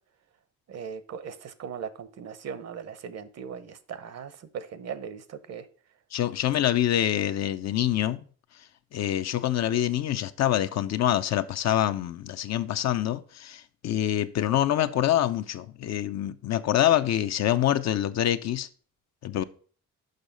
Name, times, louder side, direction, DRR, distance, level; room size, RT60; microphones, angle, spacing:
voice 1, 0.7-5.7, right 7 dB, 60° right, 0.9 m, -39 dB
voice 2, 6.1-8.3 8.9-18.7 19.2-19.4, left 12 dB, 60° left, 0.6 m, -25 dB
6.6 x 5.5 x 5.2 m
cardioid pair, 90°, 30 cm